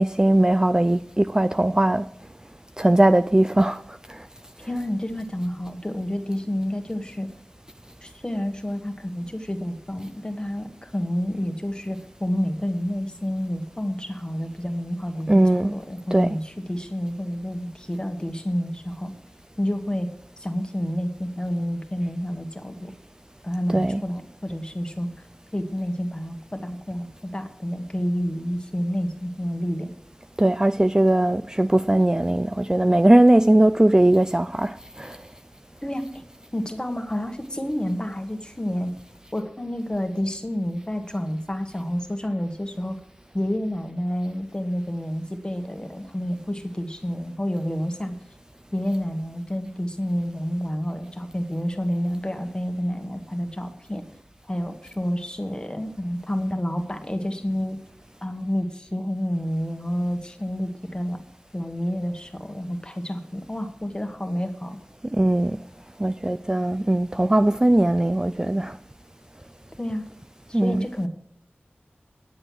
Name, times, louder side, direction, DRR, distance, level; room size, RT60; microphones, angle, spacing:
voice 1, 0.0-2.1 2.8-3.8 4.1-4.3 15.3-15.7 16.1-16.4 23.7-24.0 30.4-35.2 65.1-65.6 66.0-68.8 70.5-70.9, right 1 dB, 20° right, 0.3 m, -19 dB
voice 2, 4.6-7.3 8.0-19.1 19.6-20.1 20.4-22.9 23.4-25.1 25.5-29.9 35.8-36.2 36.5-38.9 39.3-43.0 43.3-48.2 48.7-54.0 54.5-57.8 58.2-61.2 61.5-64.8 69.8-70.1 70.5-71.1, equal, 20° left, 1.5 m, -29 dB
9.8 x 7.7 x 6.2 m
wide cardioid pair, 50°, 4 cm